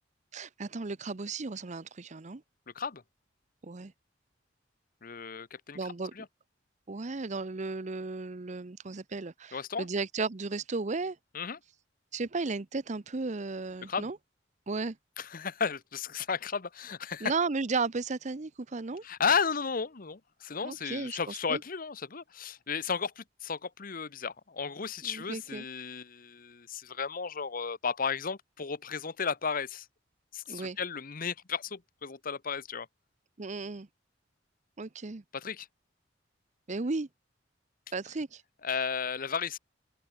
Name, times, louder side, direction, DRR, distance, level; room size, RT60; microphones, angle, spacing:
voice 1, 0.3-2.4 3.6-3.9 5.7-6.1 6.9-11.2 12.1-14.2 14.7-15.0 17.2-19.0 20.6-21.6 25.0-25.6 30.5-30.8 33.4-33.9 34.8-35.2 36.7-37.1 37.9-38.4, right 3 dB, 40° right, 0.7 m, -34 dB
voice 2, 5.0-5.8 6.1-6.3 9.5-9.9 11.3-11.6 13.8-14.1 15.2-17.3 19.0-29.9 30.3-32.9 35.3-35.7 38.6-39.6, left 6 dB, 50° left, 0.9 m, -34 dB
head